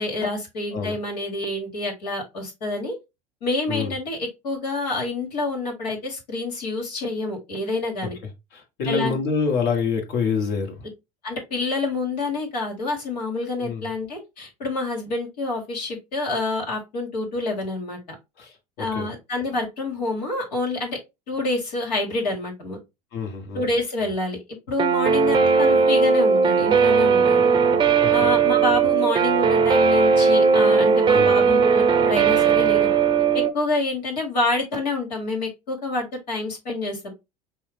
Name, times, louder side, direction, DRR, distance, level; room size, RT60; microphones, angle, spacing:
voice 1, 0.0-2.9 3.4-8.2 8.9-9.2 11.2-18.0 18.8-21.0 21.3-22.8 23.5-24.4 24.7-27.5 28.1-32.9 33.5-37.1, left 2 dB, 75° left, 1.7 m, -27 dB
voice 2, 8.5-10.8 13.6-13.8 18.4-19.1 23.1-23.6 28.0-28.1 31.1-31.4, left 5 dB, 60° left, 1.5 m, -26 dB
Guitar, 24.8-33.5, right 5 dB, 20° right, 0.6 m, -18 dB
5.4 x 2.2 x 3.4 m
figure-of-eight pair, 70°, 21 cm